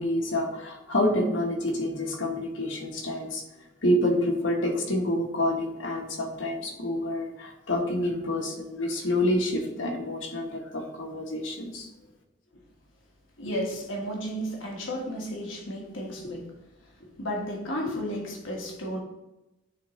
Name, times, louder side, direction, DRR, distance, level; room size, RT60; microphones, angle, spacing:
voice 1, 0.0-3.4 3.8-11.9, left 1 dB, 75° left, 3 dB, 1.2 m, -28 dB
voice 2, 13.4-16.5 17.2-19.0, equal, 90° left, -1 dB, 1.5 m, -33 dB
9.4 x 3.7 x 3.1 m, 0.95 s
head